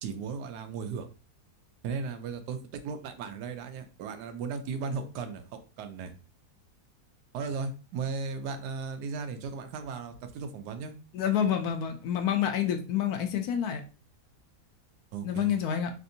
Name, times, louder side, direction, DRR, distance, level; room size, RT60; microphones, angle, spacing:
voice 1, 0.0-1.1 1.8-6.1 7.3-10.9 15.1-15.5, right 5 dB, 85° right, 8 dB, 1.2 m, -36 dB
voice 2, 11.1-13.8 15.2-15.9, left 9 dB, 75° left, 6 dB, 1.0 m, -28 dB
3.3 x 2.6 x 2.6 m, 0.34 s
omnidirectional pair, 1.7 m